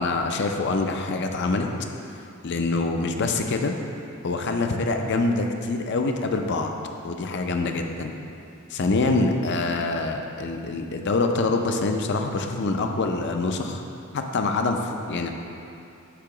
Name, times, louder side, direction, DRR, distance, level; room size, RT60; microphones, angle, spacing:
voice 1, 0.0-1.7 2.4-3.7 4.2-6.7 7.0-8.1 8.7-13.8 14.1-15.3, left 3 dB, 50° left, 4 dB, 0.5 m, -25 dB
8.4 x 2.9 x 5.9 m, 2.7 s
head